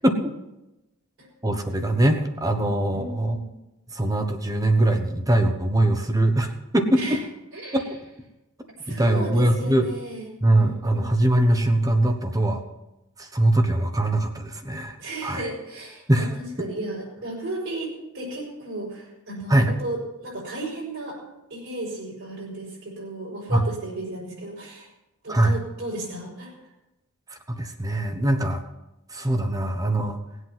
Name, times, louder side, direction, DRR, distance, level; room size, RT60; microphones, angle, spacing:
voice 1, 1.4-3.4 3.9-7.2 7.7-7.9 8.9-9.9 10.4-12.6 13.2-15.0 15.2-15.4 16.1-16.3 19.5-19.7 23.5-23.6 25.3-25.5 27.5-28.6 29.1-30.2, right 1 dB, 15° right, 6 dB, 1.1 m, -22 dB
voice 2, 2.9-3.6 7.0-7.2 7.5-7.9 8.7-11.2 15.0-21.2 21.5-24.9 25.2-26.5, right 1 dB, 60° right, -6 dB, 5.2 m, -34 dB
19.5 x 8.2 x 5.8 m, 0.97 s
head